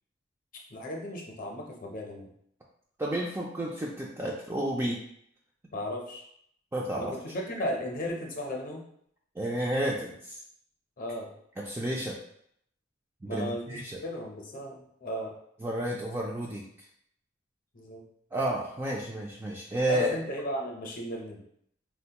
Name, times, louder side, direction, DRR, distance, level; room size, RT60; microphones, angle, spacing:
voice 1, 0.7-2.3 5.7-6.3 6.9-8.8 11.0-11.3 13.2-15.3 17.7-18.0 19.9-21.4, equal, 45° left, 0 dB, 0.6 m, -35 dB
voice 2, 3.0-5.0 6.7-7.1 9.4-10.4 11.6-12.2 13.2-14.0 15.6-16.6 18.3-20.1, right 1 dB, 10° right, -3 dB, 0.3 m, -31 dB
3.8 x 2.2 x 2.8 m, 0.69 s
head